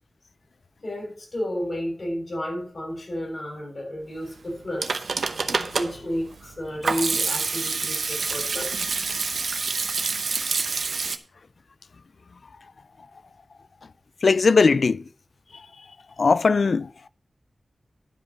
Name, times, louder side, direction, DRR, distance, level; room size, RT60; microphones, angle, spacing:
voice 1, 0.8-5.1 5.7-8.9, equal, 50° left, 6.5 m, -32 dB
Hands / Sink (filling or washing), 4.5-11.2, right 4 dB, 90° right, 0.8 m, -27 dB
voice 2, 14.2-15.0 16.2-16.9, left 4 dB, 75° left, 0.4 m, -18 dB
11.5 x 5.3 x 7.0 m
wide cardioid pair, 85°, 0 cm